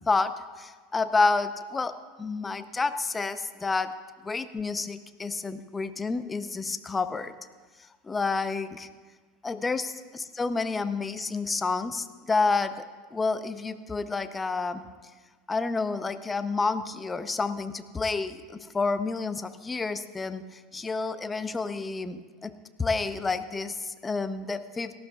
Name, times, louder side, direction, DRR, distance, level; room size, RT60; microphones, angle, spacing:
voice 1, 0.1-3.9 4.2-7.3 8.0-8.9 9.4-14.8 15.5-22.5 22.8-25.0, left 4 dB, 20° left, 11 dB, 0.7 m, -29 dB
18.0 x 14.0 x 2.4 m, 1.4 s
hypercardioid pair, 80°, 0 cm